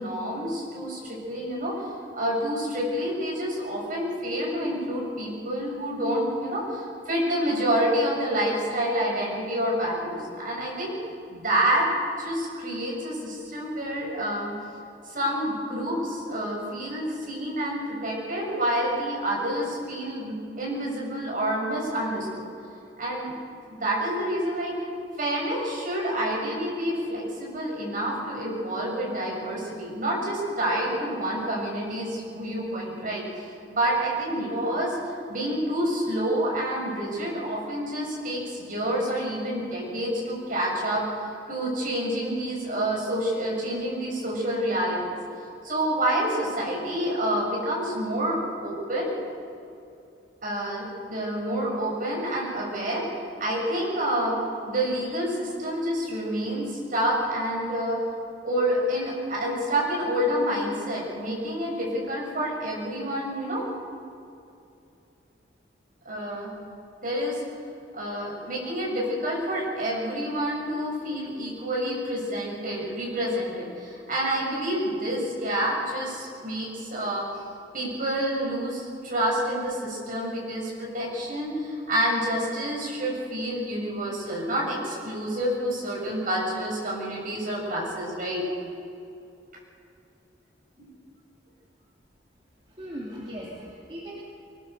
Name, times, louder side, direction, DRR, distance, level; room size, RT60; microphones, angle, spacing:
voice 1, 0.0-1.8 2.1-10.9 11.3-11.9 12.2-14.5 15.0-22.4 23.0-23.4 23.7-24.7 25.2-35.0 35.3-41.0 41.5-45.2 45.6-49.1 50.4-54.3 54.7-58.0 58.4-63.6 66.1-66.5 67.0-67.4 67.9-77.2 77.7-88.4, right 1 dB, 50° right, -2 dB, 6.9 m, -28 dB
voice 2, 92.7-94.2, equal, 30° right, -4 dB, 2.7 m, -38 dB
24.0 x 18.5 x 6.7 m, 2.7 s
head